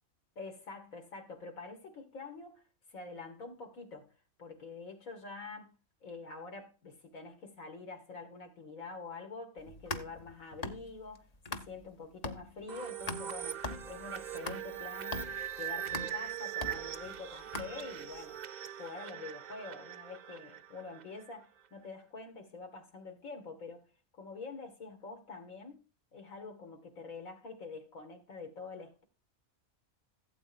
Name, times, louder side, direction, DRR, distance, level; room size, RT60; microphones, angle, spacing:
voice 1, 0.4-2.6 2.9-4.1 4.4-5.7 6.0-15.3 15.6-18.4 18.8-23.9 24.1-25.8 26.1-29.0, left 4 dB, 75° left, 2.4 m, -46 dB
sound 1, 9.6-11.9 12.2-18.2, left 2 dB, 35° left, 0.9 m, -42 dB
sound 2, 12.7-21.3, right 10 dB, 75° right, 0.4 m, -41 dB
16.0 x 8.3 x 2.6 m
omnidirectional pair, 1.4 m